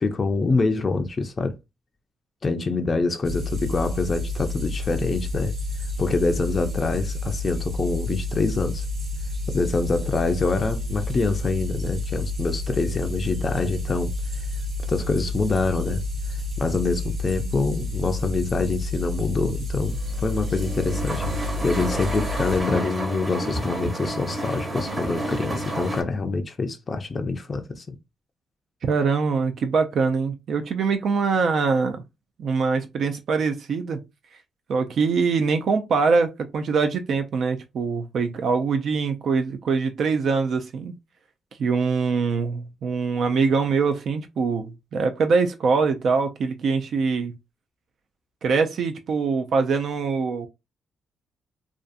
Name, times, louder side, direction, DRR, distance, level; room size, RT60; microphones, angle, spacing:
voice 1, 0.0-1.6 2.4-5.5 6.0-8.9 9.5-14.1 14.9-16.0 16.6-21.3 21.6-28.0, left 3 dB, 35° left, 0.4 m, -25 dB
sound 1, 3.2-22.6, left 2 dB, 40° right, 1.1 m, -29 dB
sound 2, 19.9-26.0, right 1 dB, 20° right, 0.9 m, -30 dB
voice 2, 28.8-32.0 32.4-34.0 34.7-40.9 41.6-47.4 48.4-50.5, right 5 dB, 65° right, 0.4 m, -23 dB
2.5 x 2.3 x 2.4 m
cardioid pair, 85°, 0 cm